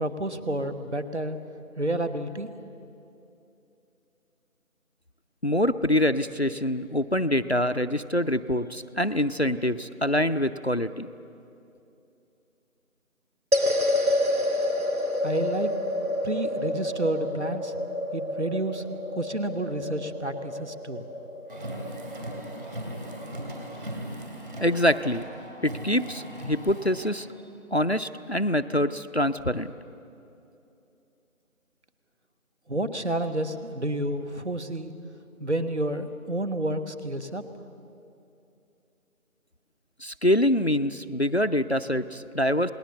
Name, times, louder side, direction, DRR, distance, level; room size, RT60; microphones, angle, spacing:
voice 1, 0.0-1.4 1.8-2.5 15.2-15.7 16.2-17.7 18.1-18.8 19.1-21.0 32.7-34.9 35.4-37.4, right 1 dB, 50° right, 9 dB, 1.4 m, -30 dB
voice 2, 5.4-11.1 24.6-25.2 25.6-27.3 27.7-29.7 40.0-42.7, left 1 dB, 50° left, 11 dB, 0.5 m, -25 dB
sound 1, 13.5-23.9, left 1 dB, 75° right, 2.4 m, -29 dB
Car, 21.5-27.1, right 1 dB, 35° right, 3.0 m, -38 dB
28.0 x 19.5 x 7.1 m, 2.7 s
figure-of-eight pair, 170°, 43 cm